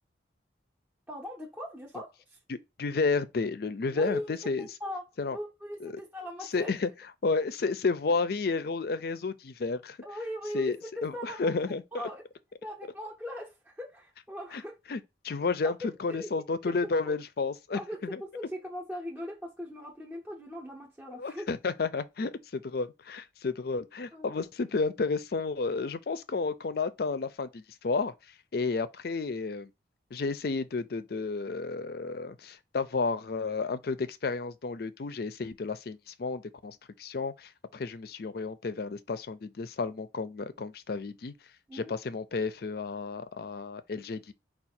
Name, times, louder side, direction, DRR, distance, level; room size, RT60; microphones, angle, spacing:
voice 1, 1.1-2.4 3.9-6.7 10.0-11.5 11.9-12.2 12.6-14.8 15.6-16.3 16.6-17.1 17.7-21.5 24.1-24.4 41.7-41.9, equal, 10° right, 0.6 m, -40 dB
voice 2, 2.5-4.7 5.2-5.4 5.8-5.9 6.5-6.9 7.2-10.0 10.5-10.8 11.0-12.0 14.5-14.6 14.9-15.0 15.2-18.2 21.2-28.1 28.5-29.7 30.1-41.3 41.7-44.3, left 4 dB, 55° left, 0.4 m, -31 dB
4.7 x 2.3 x 4.2 m
head